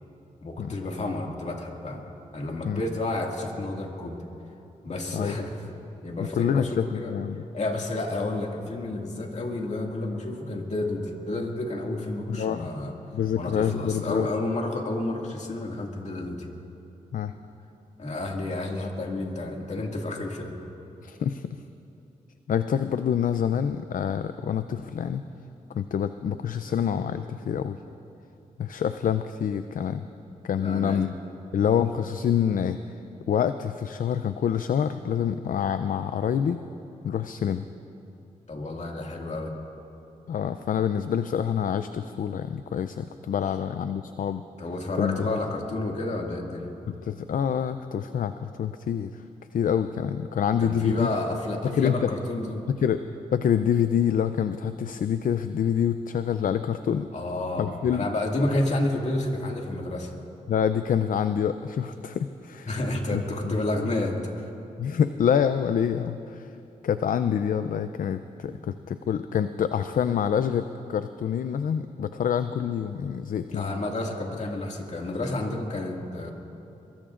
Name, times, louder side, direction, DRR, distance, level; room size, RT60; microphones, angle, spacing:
voice 1, 0.4-2.1 2.3-4.2 4.8-5.5 6.0-7.1 7.5-12.9 13.3-16.5 18.0-20.6 30.6-31.0 38.5-39.5 44.6-46.7 50.6-52.7 57.1-60.1 62.7-64.5 68.5-68.6 73.5-76.3, left 2 dB, 50° left, 0 dB, 2.1 m, -30 dB
voice 2, 6.3-7.4 12.3-12.7 13.1-14.3 17.1-17.3 21.0-21.6 22.5-25.2 25.7-27.8 28.6-30.1 30.4-31.1 31.5-32.8 33.3-36.6 37.0-37.7 40.3-44.4 45.0-45.2 46.9-49.2 49.5-51.1 51.6-52.1 52.7-57.1 57.6-58.1 60.5-62.7 63.1-63.5 64.8-66.6 66.8-73.7, left 8 dB, 65° left, 10 dB, 0.5 m, -26 dB
23.0 x 22.5 x 2.5 m, 2.9 s
cardioid pair, 70°, 15 cm